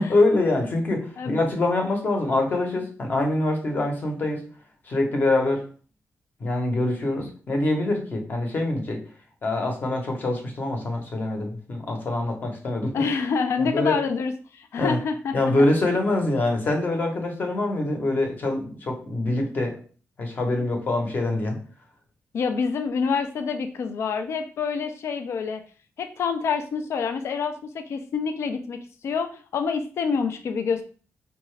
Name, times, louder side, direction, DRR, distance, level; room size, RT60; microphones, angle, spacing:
voice 1, 0.0-4.4 4.9-5.6 6.4-9.0 9.4-13.1 13.7-14.0 14.8-15.0 15.3-19.8 20.2-21.6, left 2 dB, 40° left, 2 dB, 0.9 m, -24 dB
voice 2, 12.9-15.7 22.3-25.6 26.0-30.8, left 5 dB, 65° left, 7 dB, 0.5 m, -27 dB
4.6 x 2.5 x 3.2 m, 0.40 s
wide cardioid pair, 175°, 5 cm